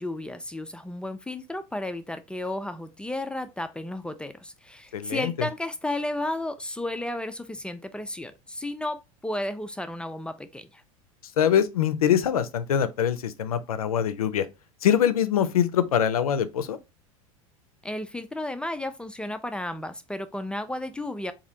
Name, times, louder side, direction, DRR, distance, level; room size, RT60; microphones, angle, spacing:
voice 1, 0.0-10.8 17.8-21.3, left 1 dB, 5° left, 0.3 m, -33 dB
voice 2, 4.9-5.5 11.4-14.5 14.8-16.8, left 9 dB, 85° left, 0.5 m, -23 dB
4.0 x 2.7 x 2.7 m
hypercardioid pair, 85°, 18 cm